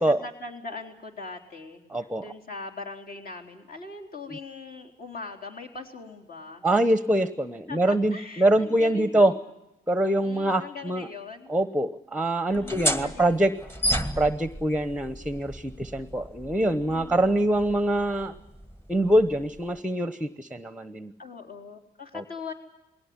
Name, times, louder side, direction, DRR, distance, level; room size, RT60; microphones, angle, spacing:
voice 1, 0.1-6.7 7.7-9.4 10.2-11.5 12.5-13.5 16.6-17.6 21.2-22.5, left 4 dB, 45° left, 1 dB, 4.1 m, -41 dB
voice 2, 1.9-2.2 4.3-4.4 6.6-9.3 9.9-11.1 11.5-13.5 14.1-18.3 18.9-21.1 22.1-22.2, right 1 dB, 5° right, 14 dB, 1.0 m, -24 dB
sound 1, 12.5-19.8, equal, 10° left, 1.8 m, -33 dB
21.0 x 17.5 x 9.8 m, 0.93 s
cardioid pair, 90°, 20 cm